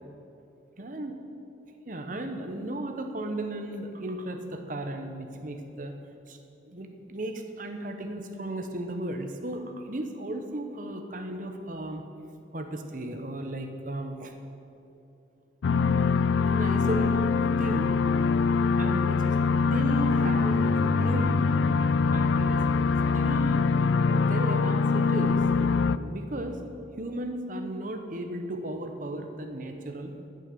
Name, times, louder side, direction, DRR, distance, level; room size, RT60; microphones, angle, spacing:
voice 1, 0.8-1.1 1.9-5.9 6.3-6.4 6.7-12.0 12.5-14.3 16.4-18.0 18.7-19.4 19.7-21.5 22.1-22.6 23.1-23.7 24.1-25.5 26.0-26.6 27.0-30.1, right 1 dB, 45° right, 5 dB, 1.0 m, -35 dB
sound 1, 15.6-26.0, left 4 dB, 80° left, 0.4 m, -23 dB
14.5 x 6.5 x 6.8 m, 2.9 s
head